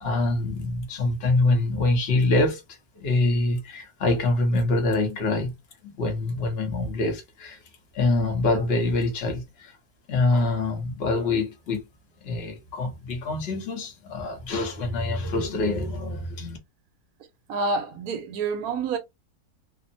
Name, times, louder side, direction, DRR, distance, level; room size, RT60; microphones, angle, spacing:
voice 1, 0.0-2.6 3.0-5.5 5.8-7.6 7.9-9.8 10.1-11.8 12.2-16.6, left 2 dB, 45° left, 0.9 m, -25 dB
voice 2, 17.5-19.0, right 4 dB, 70° right, 1.0 m, -28 dB
3.0 x 2.0 x 2.6 m
omnidirectional pair, 1.7 m